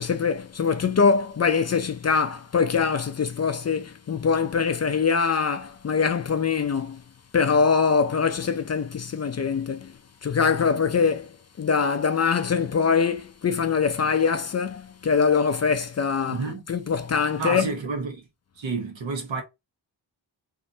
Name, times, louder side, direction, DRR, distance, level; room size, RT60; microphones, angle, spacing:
voice 1, 0.0-7.0 7.3-9.9 10.2-11.3 11.6-16.4 16.7-17.7, left 5 dB, 35° left, 0.4 m, -23 dB
voice 2, 16.3-16.6 17.4-18.3 18.6-19.4, right 4 dB, 80° right, 1.2 m, -30 dB
3.1 x 2.6 x 2.7 m
wide cardioid pair, 95°, 45 cm